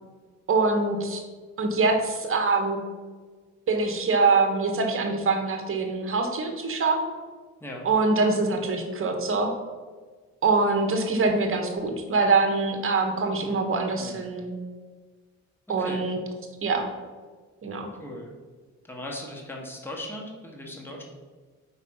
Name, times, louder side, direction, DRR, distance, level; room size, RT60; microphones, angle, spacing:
voice 1, 0.5-1.2 1.6-2.8 3.7-7.0 7.8-9.5 10.4-14.5 15.7-16.2 16.6-16.9 17.6-17.9, right 3 dB, 45° right, 3 dB, 1.1 m, -24 dB
voice 2, 17.9-18.3 18.8-21.0, left 1 dB, 5° left, -1 dB, 1.2 m, -38 dB
4.8 x 4.1 x 5.5 m, 1.4 s
cardioid pair, 90°, 30 cm